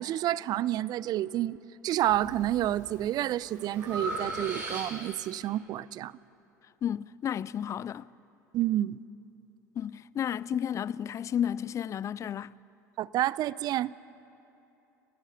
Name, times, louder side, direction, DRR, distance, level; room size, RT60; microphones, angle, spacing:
voice 1, 0.0-1.6 1.8-6.1 8.5-9.0 13.0-13.9, right 13 dB, 45° right, 0.5 m, -29 dB
Breathing, 2.0-2.5 3.0-5.2, right 2 dB, 80° right, 6.3 m, -38 dB
voice 2, 6.8-8.1 9.8-12.5, left 9 dB, 30° left, 0.5 m, -32 dB
30.0 x 15.5 x 5.8 m
figure-of-eight pair, 70°, 10 cm